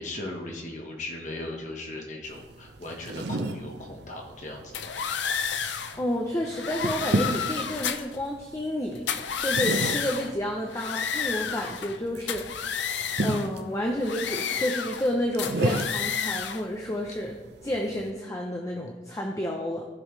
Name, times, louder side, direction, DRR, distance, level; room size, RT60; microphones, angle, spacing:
voice 1, 0.0-4.9, left 2 dB, 40° left, 0 dB, 1.3 m, -38 dB
sound 1, 2.2-18.1, right 2 dB, 60° right, 0.6 m, -34 dB
sound 2, 4.7-6.0 6.5-8.2 9.0-10.3 10.7-12.0 12.3-13.5 14.0-15.1 15.4-16.6, left 7 dB, 70° left, 0.6 m, -31 dB
voice 2, 6.0-9.0 9.4-12.9 13.2-17.3 17.6-19.9, equal, 15° left, 0 dB, 0.7 m, -30 dB
15.0 x 5.5 x 3.2 m, 1.2 s
head